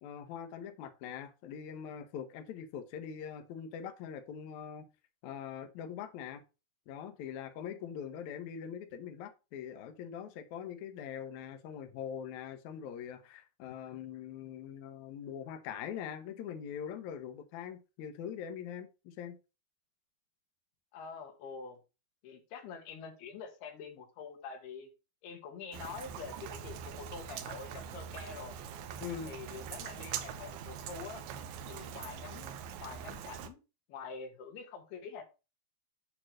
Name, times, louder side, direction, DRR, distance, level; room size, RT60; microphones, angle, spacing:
voice 1, 0.0-4.9 5.2-6.4 6.9-19.4 29.0-29.3, left 8 dB, 70° left, 1.8 m, -43 dB
voice 2, 20.9-21.8 22.2-24.9 25.2-28.6 29.2-31.3 31.7-33.6 33.9-35.2, left 6 dB, 90° left, 3.4 m, -46 dB
Rain, 25.7-33.5, right 8 dB, 80° right, 2.6 m, -43 dB
8.7 x 3.0 x 6.3 m
omnidirectional pair, 4.5 m